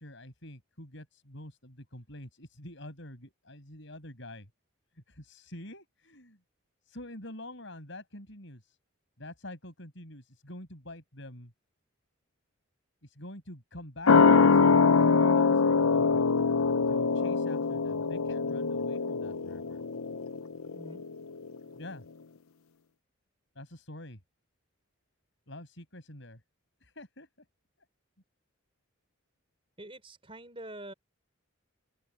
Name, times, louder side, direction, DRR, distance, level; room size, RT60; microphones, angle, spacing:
voice 1, 0.0-4.5 4.9-6.4 6.9-8.8 9.2-11.5 13.0-16.2 16.9-19.8 21.7-22.0 23.6-24.2 25.5-26.4 26.8-27.3, left 1 dB, 60° left, 7.2 m, -46 dB
sound 1, 14.1-21.1 21.4-21.5, left 5 dB, 90° left, 0.8 m, -24 dB
voice 2, 29.8-30.9, right 1 dB, 25° right, 4.5 m, -45 dB
open air
head